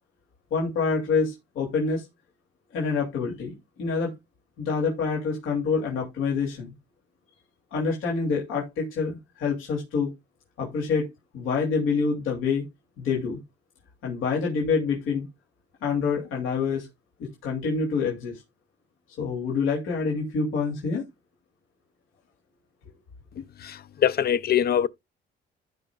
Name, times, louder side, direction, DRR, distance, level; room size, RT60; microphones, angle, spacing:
voice 1, 0.5-2.1 2.7-4.1 4.6-6.7 7.7-10.1 10.6-11.1 11.3-12.6 13.0-13.4 14.0-15.2 15.8-16.9 17.2-18.4 19.2-21.0, left 5 dB, 85° left, 2.9 m, -26 dB
voice 2, 23.6-24.9, left 9 dB, 50° left, 0.6 m, -23 dB
15.0 x 5.3 x 2.4 m
cardioid pair, 90°, 20 cm